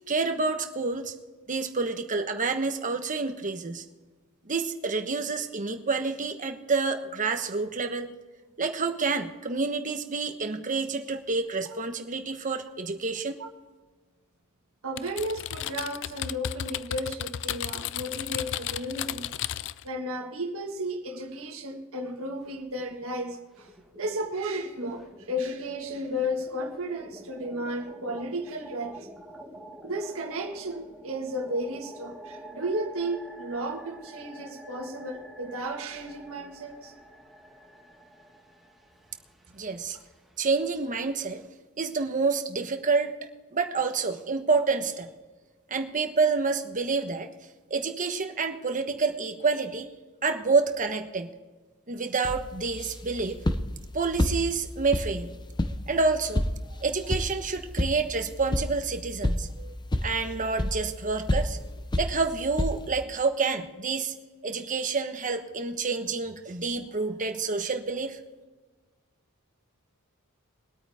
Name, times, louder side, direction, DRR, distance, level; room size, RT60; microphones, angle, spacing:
voice 1, 0.1-1.1 1.5-3.8 4.4-8.1 8.6-13.4 39.5-40.0 40.4-41.4 41.8-43.1 43.5-45.1 45.7-47.3 47.7-49.9 50.2-51.3 51.9-53.4 53.9-55.3 55.9-56.4 56.8-59.7 60.0-61.6 62.0-64.1 64.4-68.2, right 4 dB, 35° right, 5 dB, 1.2 m, -28 dB
voice 2, 14.8-19.3 19.8-29.1 29.8-36.9 39.9-40.0, equal, 65° right, 3 dB, 1.8 m, -33 dB
Typing, 15.0-19.9, left 11 dB, 55° left, 0.4 m, -34 dB
sound 1, 22.3-23.1 23.4-41.5, right 1 dB, ahead, 1.7 m, -48 dB
sound 2, 52.2-63.0, left 1 dB, 20° left, 0.7 m, -31 dB
22.5 x 8.8 x 3.6 m, 1.3 s
head